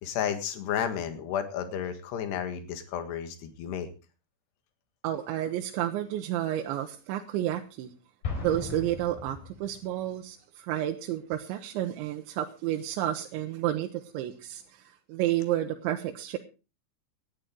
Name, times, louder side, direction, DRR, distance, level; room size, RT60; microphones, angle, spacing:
voice 1, 0.0-3.9, left 9 dB, 65° left, 8 dB, 3.6 m, -32 dB
voice 2, 5.0-7.9 8.4-16.4, right 12 dB, 80° right, 3 dB, 3.2 m, -31 dB
Explosion, 8.2-10.1, left 4 dB, 50° left, 5.7 m, -37 dB
18.5 x 11.5 x 3.8 m, 0.32 s
omnidirectional pair, 5.4 m